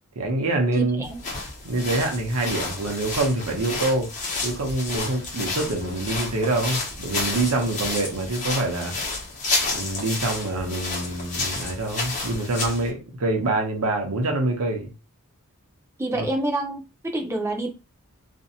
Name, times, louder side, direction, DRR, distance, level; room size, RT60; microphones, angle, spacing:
voice 1, 0.2-1.0 1.6-4.1 4.4-9.0 9.7-14.9 16.2-16.3, right 2 dB, 75° right, 0.7 m, -25 dB
voice 2, 0.7-1.2 16.0-17.7, right 1 dB, 10° right, 0.5 m, -28 dB
sound 1, 1.0-12.9, left 3 dB, 35° left, 0.8 m, -30 dB
2.5 x 2.1 x 2.6 m
head